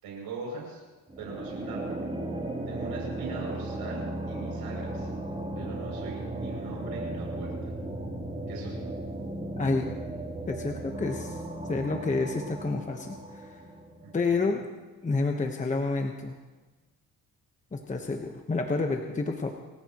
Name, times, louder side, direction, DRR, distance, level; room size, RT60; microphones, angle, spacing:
voice 1, 0.0-0.8 1.2-2.1 2.7-5.1 5.6-7.7 8.5-8.8 14.0-14.5, right 4 dB, 90° right, -2 dB, 7.2 m, -41 dB
sound 1, 1.1-14.2, right 1 dB, 15° right, 3.4 m, -36 dB
voice 2, 9.6-9.9 10.5-11.4 11.7-13.6 14.1-14.6 15.0-16.3 17.7-19.5, left 3 dB, 20° left, 3 dB, 1.2 m, -29 dB
30.0 x 14.0 x 3.1 m, 1.2 s
cardioid pair, 110°, 37 cm